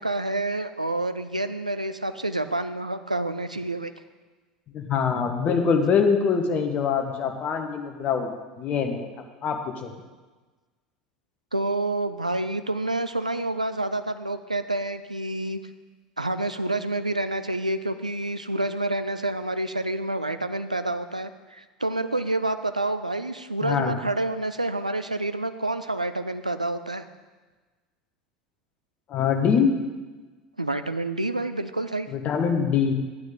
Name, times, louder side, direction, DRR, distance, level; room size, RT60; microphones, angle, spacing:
voice 1, 0.0-3.9 11.5-15.6 16.2-27.0 30.6-32.1, right 2 dB, 90° right, 10 dB, 0.4 m, -28 dB
voice 2, 4.7-8.3 8.6-9.1 9.4-9.9 23.6-24.0 29.1-29.7 32.1-32.9, left 6 dB, 40° left, 4 dB, 1.3 m, -23 dB
11.5 x 9.3 x 3.7 m, 1.3 s
figure-of-eight pair, 75°, 4 cm